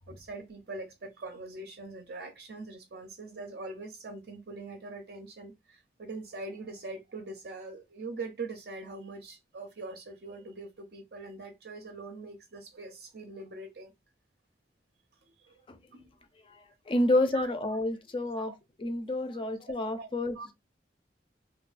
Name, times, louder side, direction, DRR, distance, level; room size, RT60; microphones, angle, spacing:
voice 1, 0.1-13.9 15.2-15.6 15.9-16.1 17.3-17.5 18.4-18.5 19.3-19.4 20.0-20.1 20.3-20.5, right 3 dB, 65° right, 0.5 m, -42 dB
voice 2, 16.9-18.5 18.8-20.5, left 1 dB, 30° left, 0.4 m, -29 dB
3.0 x 2.2 x 2.4 m
head